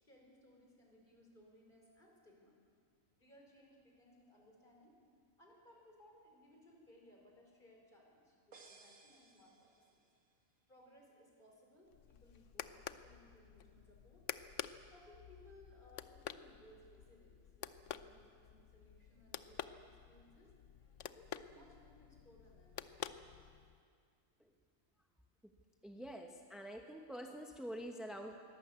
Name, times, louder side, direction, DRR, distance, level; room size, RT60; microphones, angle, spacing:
voice 1, 0.0-2.5 3.2-5.0 5.4-9.8 10.7-14.2 14.9-20.6 21.1-23.2, left 1 dB, 35° left, 0 dB, 5.0 m, -64 dB
sound 1, 8.5-10.3, right 4 dB, 65° right, 2.1 m, -62 dB
sound 2, 11.9-23.8, left 9 dB, 65° left, 1.0 m, -50 dB
voice 2, 25.8-28.4, equal, ahead, 3 dB, 1.0 m, -47 dB
23.0 x 17.5 x 8.3 m, 2.2 s
omnidirectional pair, 1.4 m